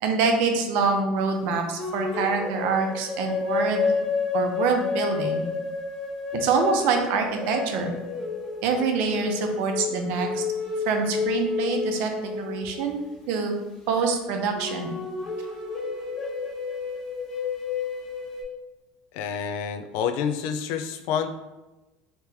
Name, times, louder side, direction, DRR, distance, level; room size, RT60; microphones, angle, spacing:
voice 1, 0.0-3.9 4.3-5.5 6.3-8.0 8.6-10.4 10.9-12.1 12.4-13.5 13.9-15.0, right 5 dB, 65° right, 4 dB, 0.6 m, -25 dB
sound 1, 1.8-13.1 14.5-18.4, left 5 dB, 30° left, 0.8 m, -30 dB
voice 2, 19.1-21.3, left 7 dB, 70° left, 9 dB, 0.3 m, -28 dB
3.1 x 2.9 x 3.4 m, 1.1 s
cardioid pair, 150°, 3 cm